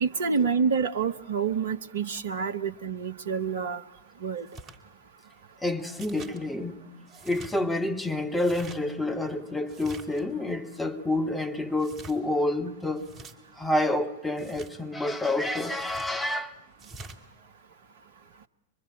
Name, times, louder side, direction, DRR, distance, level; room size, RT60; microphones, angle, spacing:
voice 1, 0.0-3.8 4.2-4.5, right 6 dB, 60° right, 0.8 m, -27 dB
sound 1, 4.5-4.8 5.9-6.4 7.1-7.5 8.3-8.8 9.7-10.2 11.8-12.2 13.0-13.3 14.4-14.7 15.8-16.1 16.8-17.2, right 3 dB, 25° right, 2.9 m, -45 dB
voice 2, 5.6-6.8 7.2-13.0 13.6-16.6, left 1 dB, 5° left, 2.0 m, -28 dB
24.5 x 23.5 x 8.7 m
figure-of-eight pair, 90°, 0 cm